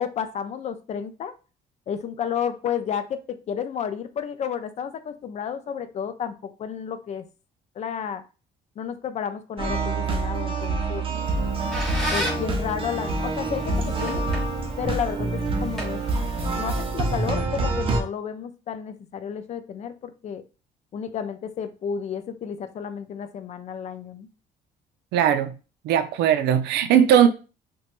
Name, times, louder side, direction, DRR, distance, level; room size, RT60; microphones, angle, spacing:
voice 1, 0.0-1.3 1.9-7.3 7.8-8.2 8.8-11.0 12.1-14.2 14.8-16.0 16.6-20.4 20.9-24.3, left 8 dB, 40° left, 0.4 m, -31 dB
sound 1, 9.6-18.0, right 3 dB, 30° right, 0.6 m, -26 dB
Squeak, 11.2-16.7, equal, ahead, 1.1 m, -35 dB
voice 2, 25.1-25.5 25.8-27.3, right 9 dB, 80° right, 0.4 m, -19 dB
2.9 x 2.2 x 2.9 m
cardioid pair, 110°, 17 cm